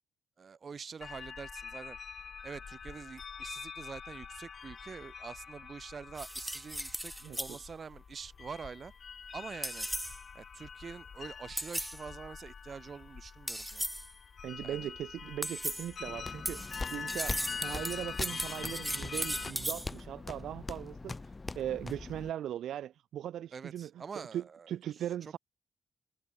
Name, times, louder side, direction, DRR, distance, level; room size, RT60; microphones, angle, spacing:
voice 1, 0.4-2.0 2.4-8.9 9.3-9.9 10.3-13.9 14.6-14.9 17.8-18.0 23.5-24.7 25.2-25.3, right 5 dB, 50° right, 5.5 m, -46 dB
sound 1, 1.0-19.5, left 6 dB, 55° left, 4.4 m, -45 dB
sound 2, 6.2-7.6 9.6-10.2 11.6-12.0 13.5-14.1 15.4-15.9 16.5-19.9, equal, 5° right, 0.9 m, -37 dB
voice 2, 14.4-23.9 24.3-25.4, right 11 dB, 80° right, 0.9 m, -39 dB
sound 3, 16.0-22.3, left 3 dB, 30° left, 3.8 m, -42 dB
cardioid pair, 70°, 0 cm